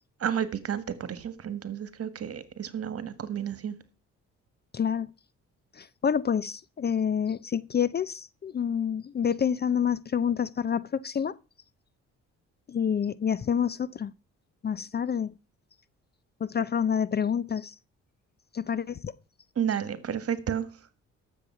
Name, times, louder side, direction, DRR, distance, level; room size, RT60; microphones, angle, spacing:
voice 1, 0.2-3.8 19.5-20.7, right 8 dB, 50° right, 1.7 m, -31 dB
voice 2, 4.7-5.1 5.8-11.4 12.7-14.1 14.6-15.3 16.4-17.7 18.5-19.1, left 7 dB, 35° left, 0.5 m, -28 dB
12.5 x 7.3 x 5.8 m
cardioid pair, 90°, 30 cm